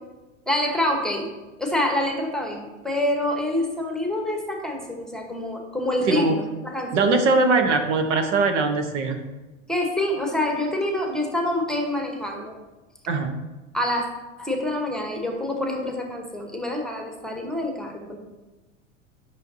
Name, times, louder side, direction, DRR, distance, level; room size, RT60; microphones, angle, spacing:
voice 1, 0.5-1.3 1.6-7.1 9.7-12.6 13.7-14.1 14.4-18.2, left 1 dB, ahead, 2 dB, 1.0 m, -26 dB
voice 2, 6.9-9.2 13.1-13.3, right 3 dB, 65° right, 6 dB, 1.0 m, -21 dB
8.9 x 5.9 x 2.7 m, 1.2 s
hypercardioid pair, 95°, 38 cm